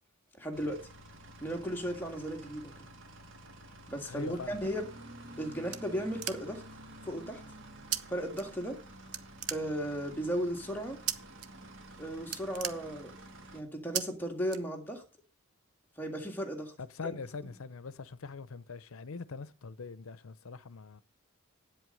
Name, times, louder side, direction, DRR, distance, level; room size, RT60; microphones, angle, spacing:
voice 1, 0.4-0.8 1.4-2.7 3.9-4.9 5.4-6.6 7.0-7.4 8.1-8.8 9.5-11.0 12.0-13.1 13.5-15.0 16.0-16.7 17.0-17.2, equal, 10° left, 1.8 m, -35 dB
sound 1, 0.5-13.6, right 1 dB, 60° right, 1.8 m, -50 dB
voice 2, 4.1-4.6 16.8-21.0, left 4 dB, 75° left, 0.7 m, -43 dB
sound 2, 5.2-6.7 7.9-8.0 8.3-8.9 9.1-10.1 11.1-11.5 11.8-11.9 12.2-13.4 13.9-14.0 14.5-15.1, right 11 dB, 90° right, 0.8 m, -37 dB
8.9 x 7.9 x 6.5 m
head